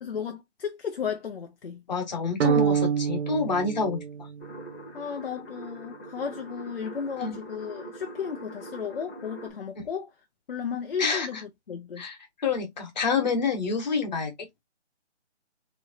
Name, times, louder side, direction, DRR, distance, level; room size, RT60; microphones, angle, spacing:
voice 1, 0.0-1.8 4.9-10.1 10.5-12.0, left 7 dB, 55° left, 0.7 m, -34 dB
voice 2, 1.9-4.0 7.2-7.4 11.0-11.4 12.0-14.3, left 4 dB, 40° left, 1.3 m, -28 dB
sound 1, 2.4-4.7, right 7 dB, 70° right, 0.5 m, -26 dB
sound 2, 4.4-9.5, right 1 dB, 10° left, 0.9 m, -43 dB
3.1 x 3.0 x 2.7 m
hypercardioid pair, 165°, 35 cm